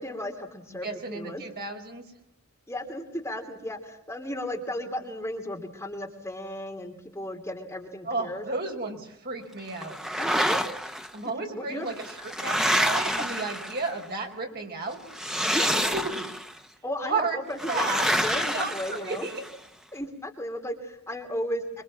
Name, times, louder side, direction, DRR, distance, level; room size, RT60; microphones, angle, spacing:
voice 1, 0.0-1.4 2.7-8.4 10.2-10.6 11.5-11.9 13.0-13.3 15.5-15.8 16.8-19.3 19.9-21.6, left 1 dB, 15° left, 2 dB, 3.0 m, -34 dB
voice 2, 0.7-2.0 8.0-10.0 11.1-15.0 15.8-16.2 17.0-17.4 17.7-18.1 18.4-19.5, right 3 dB, 45° right, 3 dB, 4.8 m, -33 dB
sound 1, 9.8-11.1 11.9-14.0 15.1-16.5 17.6-19.5, equal, 5° right, 1.0 m, -28 dB
25.5 x 25.5 x 7.4 m, 0.73 s
head